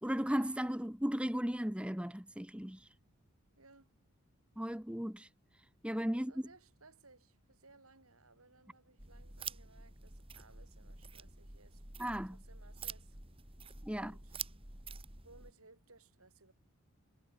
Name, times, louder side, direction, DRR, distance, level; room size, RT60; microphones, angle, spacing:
voice 1, 0.0-2.9 4.6-5.3 5.8-6.3 12.0-12.4 13.8-14.1, equal, 5° right, 1.1 m, -36 dB
voice 2, 3.6-3.9 6.3-11.8 12.3-13.2 13.9-14.4 15.2-16.5, right 3 dB, 85° right, 6.3 m, -62 dB
sound 1, 9.0-15.5, right 5 dB, 25° right, 3.2 m, -48 dB
head